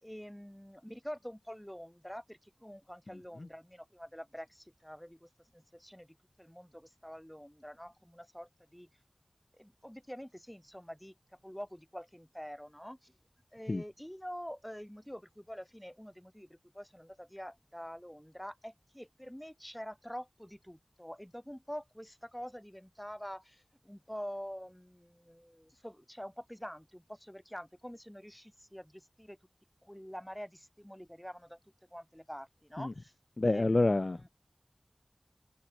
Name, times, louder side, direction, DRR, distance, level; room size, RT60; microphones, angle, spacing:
voice 1, 0.0-8.9 9.5-11.1 11.4-13.1 13.5-29.4 29.8-31.6 31.9-33.1 33.4-34.3, equal, 5° left, 4.9 m, -46 dB
voice 2, 33.4-34.2, left 2 dB, 60° left, 0.3 m, -27 dB
wide cardioid pair, 55°, 0 cm